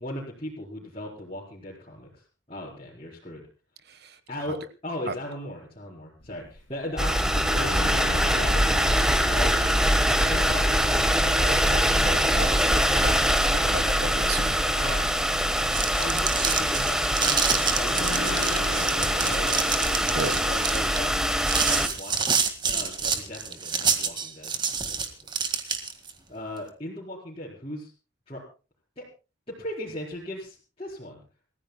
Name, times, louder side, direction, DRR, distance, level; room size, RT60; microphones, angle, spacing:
voice 1, 0.0-2.2 2.5-3.4 4.3-11.6 14.8-15.7 16.0-19.5 19.9-22.4 22.7-24.5 24.8-25.0 26.3-27.9 28.3-28.4 29.0-29.1 29.5-31.2, left 1 dB, 30° left, -6 dB, 4.5 m, -38 dB
voice 2, 3.9-4.2 5.1-5.2 11.3-13.2 13.5-14.6 20.1-20.4, right 3 dB, 50° right, 12 dB, 1.3 m, -34 dB
sound 1, 6.2-20.0, left 2 dB, 80° left, 2.6 m, -39 dB
sound 2, 7.0-21.9, equal, 5° right, 1.3 m, -23 dB
sound 3, 15.5-26.1, right 5 dB, 25° right, 1.8 m, -27 dB
29.0 x 15.0 x 2.2 m, 0.33 s
head